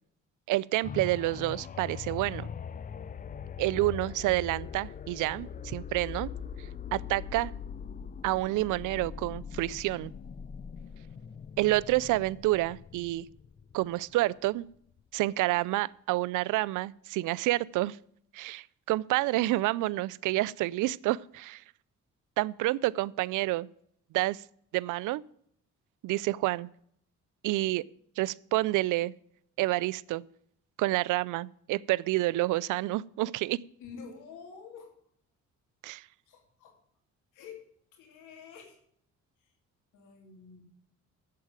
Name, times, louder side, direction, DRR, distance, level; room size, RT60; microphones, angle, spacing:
voice 1, 0.5-2.5 3.6-6.3 6.6-7.5 8.2-10.1 11.6-13.3 13.7-14.7 15.1-18.0 18.3-21.6 22.4-23.7 24.1-24.4 24.7-25.2 26.0-26.7 27.4-27.8 28.2-29.1 29.6-30.2 30.8-33.6 35.8-36.0, right 18 dB, 85° right, 22 dB, 0.5 m, -29 dB
sound 1, 0.8-14.5 15.0-15.1, left 7 dB, 30° left, 0.4 m, -42 dB
voice 2, 33.8-34.9 36.3-36.8 37.3-37.6 37.9-38.8 39.4-39.5 39.9-40.6, left 6 dB, 90° left, 3 dB, 2.9 m, -48 dB
8.4 x 7.7 x 8.8 m, 0.68 s
cardioid pair, 90°, 30 cm